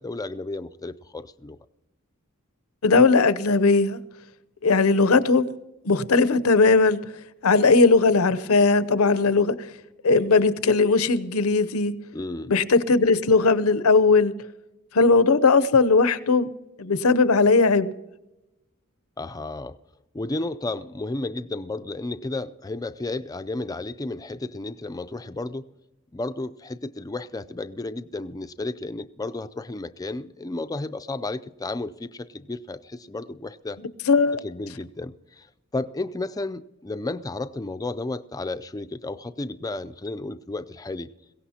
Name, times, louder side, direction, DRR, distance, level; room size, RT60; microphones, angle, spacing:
voice 1, 0.0-1.6 12.1-12.5 19.2-19.8 20.1-25.6 26.1-33.8 34.4-35.5 35.7-41.1, left 2 dB, 15° left, 0.4 m, -32 dB
voice 2, 2.8-4.0 4.6-5.5 5.8-7.0 7.4-9.5 10.0-11.9 12.5-14.3 14.9-16.5 16.8-17.9 34.1-34.4, left 4 dB, 90° left, 0.7 m, -18 dB
22.0 x 17.0 x 2.8 m
head